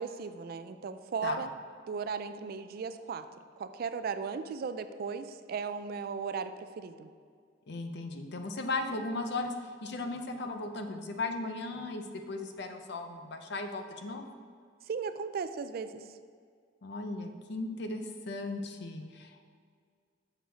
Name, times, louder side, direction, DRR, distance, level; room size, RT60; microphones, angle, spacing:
voice 1, 0.0-1.5 1.9-3.3 3.6-7.1 14.9-16.1, right 5 dB, 55° right, 11 dB, 0.3 m, -36 dB
voice 2, 7.7-9.5 9.8-14.3 16.8-19.4, left 2 dB, 65° left, 6 dB, 0.6 m, -36 dB
6.6 x 6.1 x 4.0 m, 2.1 s
head